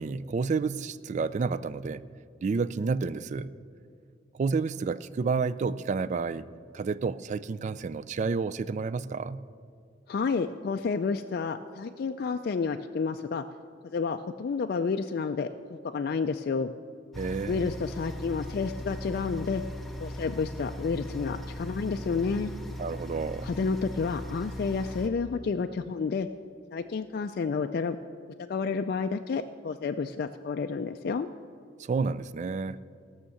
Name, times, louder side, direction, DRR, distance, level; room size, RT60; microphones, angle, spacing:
voice 1, 0.0-2.1 2.4-3.5 4.3-6.5 6.7-9.4 17.2-17.7 22.8-23.5 31.8-32.8, right 4 dB, 40° right, 16 dB, 0.3 m, -30 dB
voice 2, 10.1-13.4 13.9-16.7 17.5-19.6 20.0-22.5 23.4-26.3 26.7-28.0 28.5-31.3, left 5 dB, 55° left, 6 dB, 0.3 m, -30 dB
sound 1, 17.1-25.1, left 1 dB, ahead, 0.8 m, -39 dB
15.5 x 6.4 x 7.1 m, 2.3 s
head